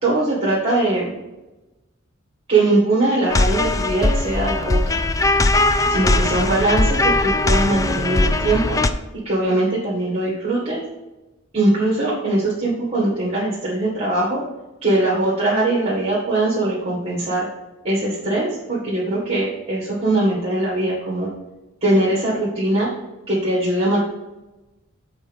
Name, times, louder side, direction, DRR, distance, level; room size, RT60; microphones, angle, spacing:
voice 1, 0.0-1.1 2.5-5.0 5.9-8.8 9.2-10.8 11.5-14.4 14.8-17.5 17.8-21.3 21.8-22.9 23.3-24.0, right 2 dB, 30° right, -5 dB, 1.8 m, -21 dB
sound 1, 3.3-8.9, left 2 dB, 15° left, 0.3 m, -19 dB
7.3 x 4.1 x 5.2 m, 1.0 s
head